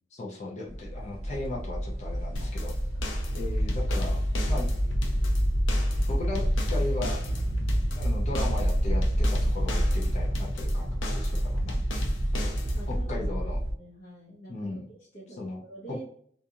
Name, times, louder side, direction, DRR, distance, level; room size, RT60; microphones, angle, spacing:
voice 1, 0.1-2.8 3.3-4.2 4.5-4.7 6.1-6.4 6.7-7.2 7.9-11.8 12.4-12.5 12.9-13.6 14.5-14.8 15.3-15.6 15.9-16.0, left 2 dB, 35° left, -3 dB, 0.5 m, -36 dB
sound 1, 0.7-13.7, equal, 55° right, 0.7 m, -27 dB
sound 2, 2.4-13.0, left 1 dB, 85° left, 0.6 m, -37 dB
voice 2, 12.7-14.8 15.1-16.0, right 2 dB, 55° left, -9 dB, 1.0 m, -46 dB
2.6 x 2.4 x 2.7 m, 0.62 s
head